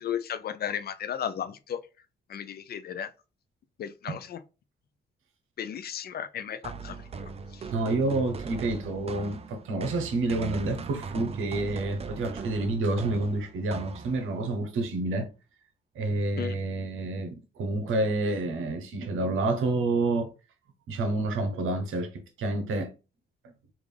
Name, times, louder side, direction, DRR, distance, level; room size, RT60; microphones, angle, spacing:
voice 1, 0.0-1.8 2.3-3.1 3.8-4.4 5.6-7.0 7.5-7.6 16.4-16.6, left 9 dB, 50° left, 0.4 m, -34 dB
sound 1, 6.6-14.5, right 4 dB, 30° right, 0.4 m, -39 dB
voice 2, 7.7-15.3 15.9-20.3 20.9-22.9, right 2 dB, 90° right, 0.9 m, -29 dB
3.6 x 2.5 x 3.3 m
cardioid pair, 100°, 20 cm